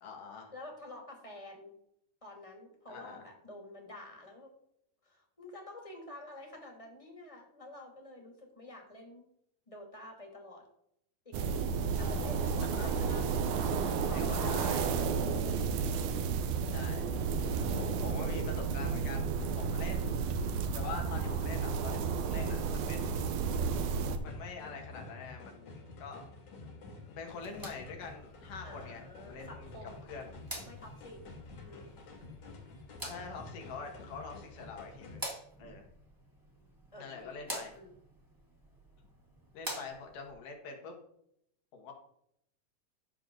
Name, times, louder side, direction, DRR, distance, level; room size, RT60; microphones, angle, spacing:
voice 1, 0.0-0.5 2.9-3.2 11.9-12.2 12.8-13.0 14.1-15.0 16.4-17.1 17.8-19.3 19.6-20.1 20.7-23.2 24.2-26.2 27.1-29.7 30.1-30.4 33.0-35.3 35.6-35.8 37.0-37.7 39.5-40.9 41.7-41.9, left 4 dB, 75° left, 2 dB, 3.4 m, -45 dB
voice 2, 0.5-1.7 2.2-4.5 5.0-9.3 9.7-10.6 11.2-11.7 12.0-13.3 13.5-14.8 28.6-30.1 30.6-31.2 31.5-31.9 36.9-37.9, left 1 dB, 10° left, 1 dB, 2.1 m, -49 dB
sound 1, 11.3-24.2, right 5 dB, 75° right, 2.3 m, -32 dB
sound 2, 24.1-35.2, left 3 dB, 60° left, 3.4 m, -50 dB
sound 3, 27.3-40.3, equal, 10° right, 1.7 m, -48 dB
12.5 x 7.0 x 3.9 m, 0.74 s
omnidirectional pair, 3.7 m